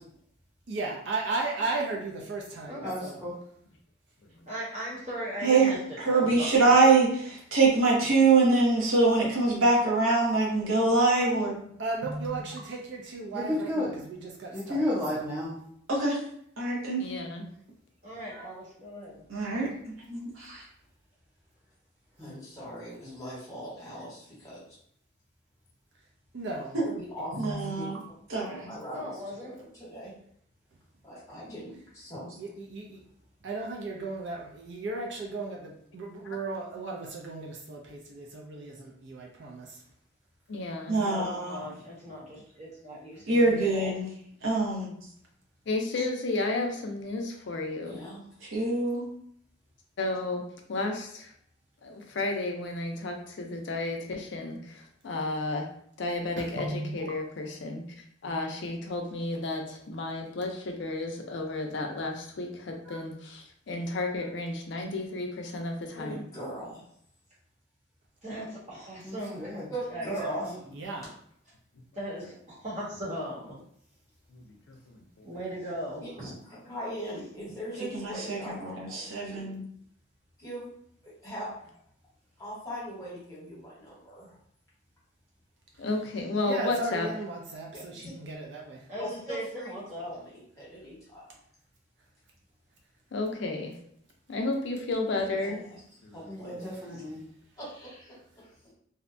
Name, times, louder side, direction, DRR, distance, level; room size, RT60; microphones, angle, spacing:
voice 1, 0.7-3.2 11.8-14.8 18.3-18.4 26.3-26.8 27.3-27.8 32.4-33.0 33.4-39.8 56.4-57.0 62.9-63.0 70.7-71.1 86.4-88.8, right 3 dB, 60° right, -1 dB, 0.4 m, -35 dB
voice 2, 2.8-3.3 13.3-13.9 14.5-15.6 22.2-22.3 69.0-69.7 70.2-70.4 96.2-97.2, left 1 dB, 10° right, -7 dB, 0.7 m, -32 dB
voice 3, 4.5-6.8 18.0-19.2 28.9-29.6 41.0-43.9 68.2-69.6 69.9-70.6 72.0-73.5 75.2-76.3 88.9-90.1, equal, 35° right, -6 dB, 0.9 m, -38 dB
voice 4, 6.0-11.6 15.9-16.2 16.6-17.0 19.3-19.7 20.1-20.6 26.7-26.8 27.4-28.0 28.3-28.5 40.9-41.6 43.3-44.1 44.4-44.9 48.5-49.1 77.9-79.6, right 3 dB, 80° right, -3 dB, 0.8 m, -24 dB
voice 5, 17.0-17.4 40.5-41.0 45.7-48.0 50.0-50.4 50.7-51.3 51.8-55.7 56.0-57.8 58.2-66.2 74.3-75.3 85.8-87.1 93.1-93.7 94.3-95.6 96.0-96.2, left 2 dB, 60° left, 3 dB, 0.4 m, -32 dB
voice 6, 22.2-24.6 27.0-28.0 28.7-30.1 31.0-32.3 47.8-48.2 65.9-66.8 69.7-70.5 76.0-76.1 76.4-79.5 80.4-80.7 81.0-81.5 82.4-84.4 87.7-87.8 89.0-91.2 95.1-95.8 96.1-96.5 96.9-97.0 97.6-98.5, equal, 15° left, -8 dB, 1.0 m, -40 dB
2.6 x 2.1 x 2.5 m, 0.68 s
head